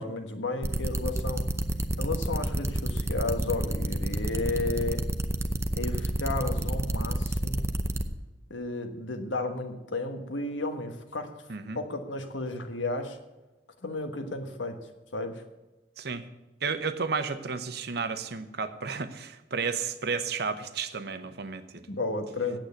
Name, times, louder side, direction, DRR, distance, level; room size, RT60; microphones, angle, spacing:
voice 1, 0.0-1.5 2.0-5.1 5.8-7.7 8.5-11.3 11.7-13.2 13.8-14.8 15.1-15.4 21.9-22.6, left 2 dB, 85° left, 6 dB, 1.4 m, -33 dB
sound 1, 0.6-8.0, right 1 dB, 15° right, 0.6 m, -29 dB
voice 2, 16.6-21.9, right 5 dB, 60° right, 10 dB, 0.9 m, -32 dB
9.0 x 8.1 x 8.1 m, 1.1 s
head